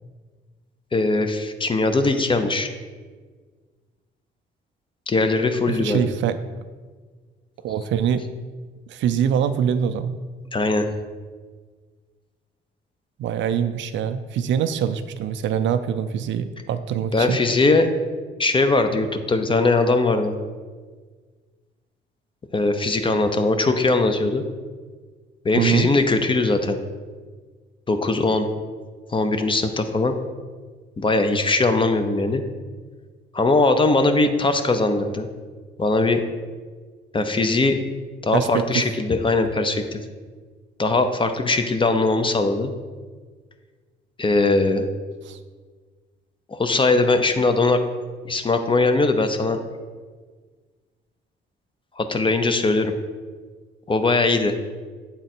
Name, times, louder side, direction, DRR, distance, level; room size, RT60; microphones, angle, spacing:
voice 1, 0.9-2.7 5.1-6.1 10.5-10.9 17.1-17.9 18.4-20.3 22.5-24.4 25.4-26.8 27.9-28.5 29.1-30.1 31.0-32.4 33.3-35.3 35.8-36.2 37.1-37.8 38.2-40.0 40.8-42.7 44.2-44.9 46.5-47.8 48.3-49.6 52.0-52.9 53.9-54.5, left 3 dB, 25° left, 7 dB, 0.6 m, -20 dB
voice 2, 5.6-6.4 7.6-8.2 8.9-10.1 13.2-17.4 25.5-25.9 38.3-38.9 45.3-45.4, right 8 dB, 70° right, 10 dB, 0.4 m, -24 dB
8.0 x 3.7 x 4.3 m, 1.5 s
cardioid pair, 90°, 20 cm